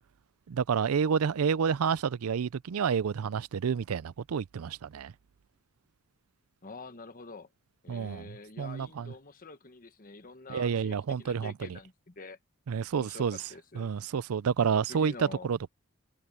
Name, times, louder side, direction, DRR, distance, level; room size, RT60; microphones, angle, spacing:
voice 1, 0.5-5.1 7.9-8.2 8.6-9.1 10.5-11.8 12.7-13.4 13.7-15.7, right 6 dB, 85° right, 0.4 m, -29 dB
voice 2, 6.6-7.5 7.8-12.4 12.9-13.9 14.9-15.5, left 3 dB, 40° left, 1.3 m, -47 dB
head